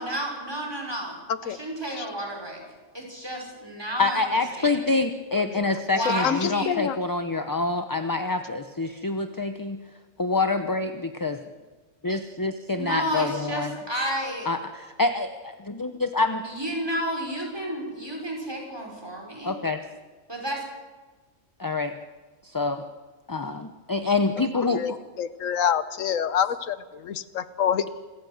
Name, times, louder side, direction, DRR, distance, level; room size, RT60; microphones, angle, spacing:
voice 1, 0.0-1.2 1.6-2.6 2.9-4.3 4.6-4.7 5.9-6.7 12.7-14.5 16.4-19.5 20.3-20.6, equal, 20° right, 0 dB, 5.2 m, -31 dB
voice 2, 4.0-9.8 10.2-11.4 12.0-13.7 14.5-16.4 19.4-19.8 21.6-22.0 22.4-22.8 23.3-25.0, left 3 dB, 20° left, 8 dB, 0.7 m, -26 dB
voice 3, 5.5-5.8 6.0-7.0 24.7-27.9, left 8 dB, 85° left, 14 dB, 1.2 m, -27 dB
26.5 x 14.0 x 7.9 m, 1.3 s
omnidirectional pair, 1.3 m